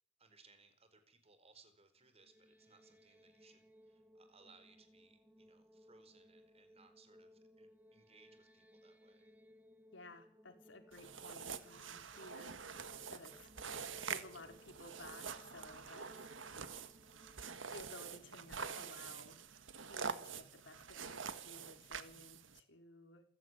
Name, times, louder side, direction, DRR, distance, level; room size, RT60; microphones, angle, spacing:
voice 1, 0.2-9.4 14.4-14.5, right 4 dB, 35° right, 9 dB, 4.5 m, -67 dB
sound 1, 2.0-19.1, equal, 10° right, 1.9 m, -65 dB
voice 2, 9.9-12.6 13.1-13.5 14.0-16.2 17.7-19.4 19.9-23.2, left 2 dB, 75° left, 5 dB, 4.5 m, -56 dB
sound 2, 10.9-22.6, right 6 dB, 85° right, 1.7 m, -46 dB
27.5 x 15.5 x 9.6 m, 0.67 s
head